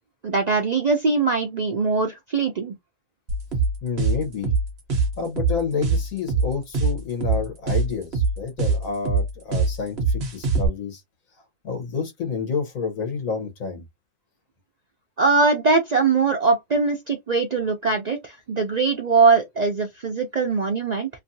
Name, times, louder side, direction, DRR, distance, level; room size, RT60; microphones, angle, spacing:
voice 1, 0.2-2.7 15.2-21.1, right 4 dB, 75° right, 0.3 m, -21 dB
sound 1, 3.3-10.7, right 4 dB, 55° right, 1.1 m, -23 dB
voice 2, 3.8-4.5 5.2-11.0 11.6-13.8, left 5 dB, 75° left, 1.5 m, -29 dB
3.0 x 2.6 x 2.7 m
omnidirectional pair, 1.4 m